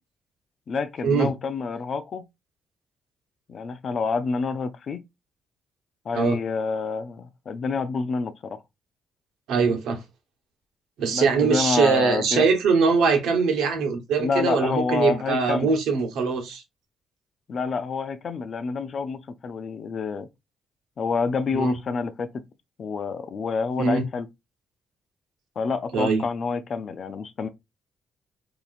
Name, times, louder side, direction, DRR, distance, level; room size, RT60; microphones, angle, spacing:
voice 1, 0.7-2.2 3.5-5.0 6.0-8.6 11.1-12.5 14.2-15.7 17.5-20.3 21.0-22.4 22.8-24.3 25.6-27.5, left 5 dB, 50° left, 0.6 m, -28 dB
voice 2, 9.5-10.0 11.0-16.6 21.5-21.8 23.8-24.1 25.9-26.2, right 5 dB, 85° right, 1.1 m, -22 dB
4.0 x 2.9 x 2.5 m
cardioid pair, 90°, 0 cm